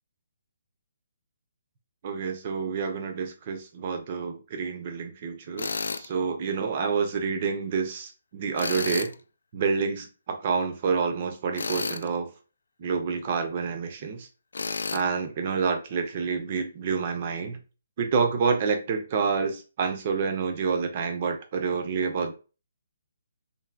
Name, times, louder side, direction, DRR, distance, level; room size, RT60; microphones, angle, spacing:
voice 1, 2.0-9.1 9.5-12.3 12.8-14.3 14.9-17.6 18.0-22.3, right 5 dB, 25° right, 0.4 m, -28 dB
Tools, 5.6-6.1 8.6-9.1 11.5-12.1 14.5-15.0, left 4 dB, 75° left, 0.3 m, -31 dB
3.2 x 2.5 x 2.4 m
hypercardioid pair, 180°, 0 cm